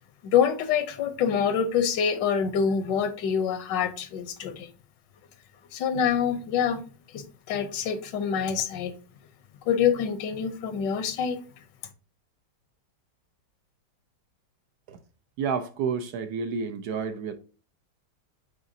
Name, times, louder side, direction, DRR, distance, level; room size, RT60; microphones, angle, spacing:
voice 1, 0.2-4.7 5.7-6.8 7.1-8.9 9.7-11.4, left 7 dB, 80° left, 1.4 m, -26 dB
voice 2, 15.4-17.3, right 6 dB, 65° right, 1.2 m, -30 dB
8.8 x 4.0 x 2.7 m
omnidirectional pair, 1.9 m